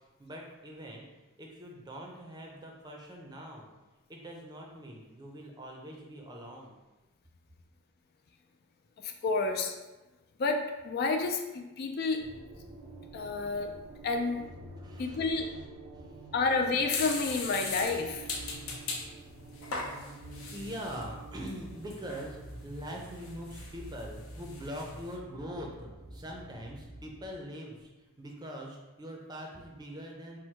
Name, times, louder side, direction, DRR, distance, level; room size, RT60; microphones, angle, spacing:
voice 1, 0.2-3.7 4.1-6.7 14.7-15.4 15.9-16.2 20.5-30.4, equal, 20° right, 0 dB, 0.5 m, -43 dB
voice 2, 9.0-9.8 10.4-12.2 13.1-13.7 14.0-14.4 15.0-15.5 16.3-18.3, left 3 dB, 45° left, 5 dB, 0.3 m, -30 dB
sound 1, 12.2-27.3, right 1 dB, 85° right, 0.7 m, -48 dB
sound 2, 16.9-19.1 19.6-21.0 21.5-21.6 21.9-22.3 22.9-24.0 24.3-24.9, left 3 dB, 70° left, 0.7 m, -38 dB
4.4 x 2.2 x 4.4 m, 1.1 s
head